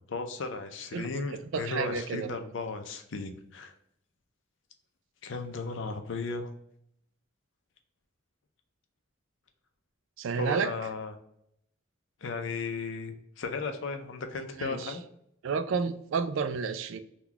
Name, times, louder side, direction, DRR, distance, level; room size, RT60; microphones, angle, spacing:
voice 1, 0.1-3.7 5.2-6.5 10.4-11.1 12.2-15.0, left 4 dB, 65° left, 6 dB, 0.5 m, -35 dB
voice 2, 0.9-2.3 10.2-10.7 14.6-15.0 15.4-17.0, right 5 dB, 70° right, 9 dB, 0.3 m, -31 dB
3.8 x 2.3 x 2.8 m, 0.73 s
head